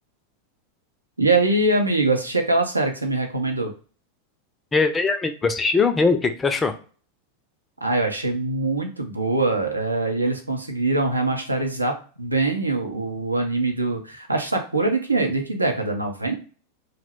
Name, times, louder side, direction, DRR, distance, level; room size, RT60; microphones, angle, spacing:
voice 1, 1.2-3.7 7.8-16.4, right 2 dB, 80° right, 3 dB, 0.5 m, -23 dB
voice 2, 4.7-6.7, left 4 dB, 15° left, 7 dB, 0.4 m, -21 dB
2.3 x 2.1 x 3.4 m, 0.39 s
figure-of-eight pair, 90°, 0 cm